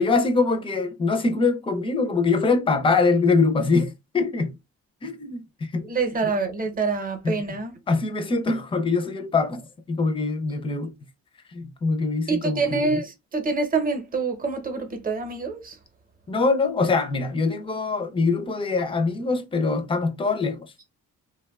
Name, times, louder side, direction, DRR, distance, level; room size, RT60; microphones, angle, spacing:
voice 1, 0.0-4.5 5.0-5.9 7.2-7.4 7.9-10.9 11.5-13.0 16.3-20.7, left 4 dB, 20° left, 0.5 m, -23 dB
voice 2, 5.8-7.7 12.3-15.8, right 4 dB, 30° right, 0.8 m, -26 dB
2.6 x 2.2 x 2.3 m
cardioid pair, 90°, 30 cm